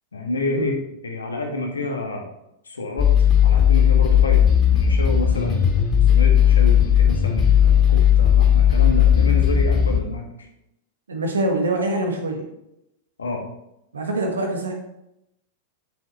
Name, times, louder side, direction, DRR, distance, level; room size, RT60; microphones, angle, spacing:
voice 1, 0.1-2.3 2.6-4.4 4.7-5.6 6.1-10.3 13.2-13.4, left 2 dB, 90° left, 2 dB, 1.6 m, -28 dB
sound 1, 3.0-10.0, left 9 dB, 20° left, 2.4 m, -16 dB
voice 2, 11.1-12.4 13.9-14.7, right 2 dB, 85° right, 2 dB, 1.7 m, -24 dB
7.4 x 7.3 x 3.1 m, 0.84 s
hypercardioid pair, 100°, 0 cm